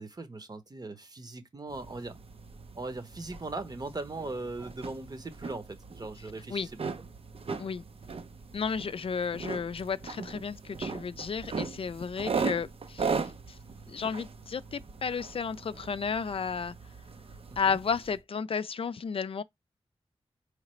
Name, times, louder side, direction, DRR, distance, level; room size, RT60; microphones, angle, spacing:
voice 1, 0.0-2.2 2.7-6.8 17.7-17.8, right 2 dB, 40° right, 0.9 m, -39 dB
sound 1, 1.7-18.2, right 5 dB, 65° right, 0.7 m, -39 dB
voice 2, 8.5-13.3 13.9-16.7 17.6-19.4, left 6 dB, 60° left, 0.4 m, -33 dB
4.8 x 3.2 x 3.1 m
wide cardioid pair, 65°, 11 cm